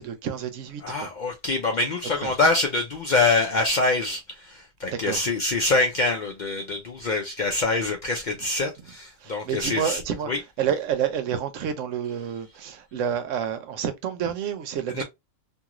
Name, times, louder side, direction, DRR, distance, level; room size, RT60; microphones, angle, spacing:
voice 1, 0.0-1.1 2.2-2.3 4.8-5.3 9.2-10.3 10.6-15.0, right 8 dB, 90° right, 1.0 m, -29 dB
voice 2, 0.8-10.0 10.3-10.4 15.0-15.1, left 3 dB, 60° left, 0.5 m, -25 dB
2.6 x 2.4 x 2.9 m
omnidirectional pair, 1.3 m